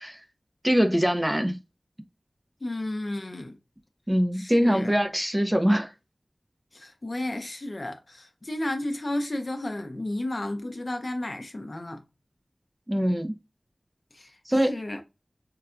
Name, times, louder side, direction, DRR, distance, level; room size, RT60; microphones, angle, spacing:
voice 1, 0.6-1.6 4.1-5.9 12.9-13.3 14.5-14.8, equal, 15° right, 0.6 m, -23 dB
voice 2, 2.6-3.6 4.3-5.0 6.7-12.0 14.1-15.0, left 1 dB, 55° left, 0.6 m, -33 dB
4.6 x 2.1 x 2.4 m
wide cardioid pair, 50°, 0 cm